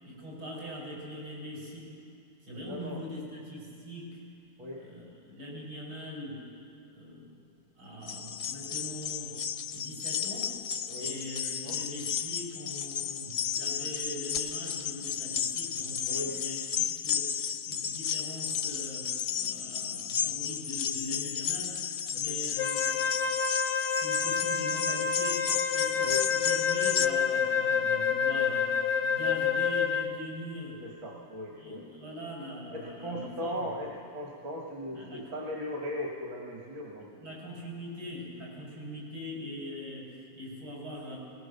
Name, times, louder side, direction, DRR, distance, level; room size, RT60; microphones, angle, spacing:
voice 1, 0.0-1.9 2.4-4.2 4.8-6.5 6.9-7.4 7.8-9.4 9.7-10.6 11.0-21.8 22.1-23.1 23.9-28.7 29.0-30.8 31.6-33.7 34.9-35.2 37.0-41.2, equal, 85° right, -4 dB, 6.8 m, -42 dB
voice 2, 2.7-3.0 4.6-4.8 10.9-11.2 11.6-11.8 16.1-16.4 22.1-22.4 26.0-26.2 30.8-31.9 32.7-37.3, equal, 70° right, -2 dB, 2.4 m, -38 dB
sound 1, 8.0-27.1, left 9 dB, 70° left, 0.7 m, -33 dB
Wind instrument woodwind instrument, 22.6-30.2, left 6 dB, 90° left, 1.8 m, -28 dB
20.5 x 20.0 x 6.7 m, 2.4 s
omnidirectional pair, 2.2 m